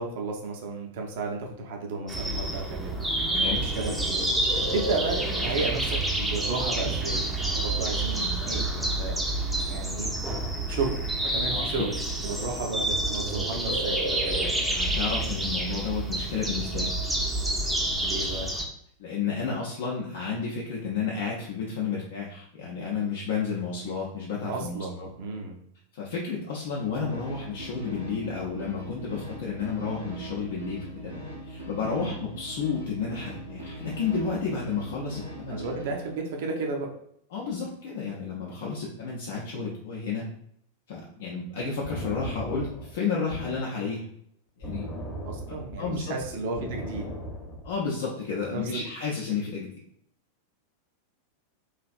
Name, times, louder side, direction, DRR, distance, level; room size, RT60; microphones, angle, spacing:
voice 1, 0.0-3.0 3.4-4.3 4.6-9.2 9.7-10.1 10.7-11.0 11.3-14.5 18.0-18.5 24.5-25.6 31.9-32.2 35.5-36.9 45.2-47.1 48.5-48.9, right 3 dB, 50° right, 2 dB, 0.6 m, -33 dB
sound 1, 2.1-18.6, right 1 dB, 5° right, 0.5 m, -28 dB
voice 2, 3.3-3.6 11.5-11.9 14.7-17.0 19.0-25.1 25.9-31.1 31.4-35.6 37.3-40.3 40.9-44.1 44.6-44.9 45.8-46.4 47.6-49.7, left 5 dB, 55° left, -3 dB, 0.5 m, -31 dB
sound 2, 26.6-36.2, equal, 90° right, 0.8 m, -41 dB
sound 3, 41.8-43.7 44.6-47.9, equal, 20° left, 0.8 m, -37 dB
3.1 x 2.4 x 2.4 m, 0.70 s
figure-of-eight pair, 90°, 0 cm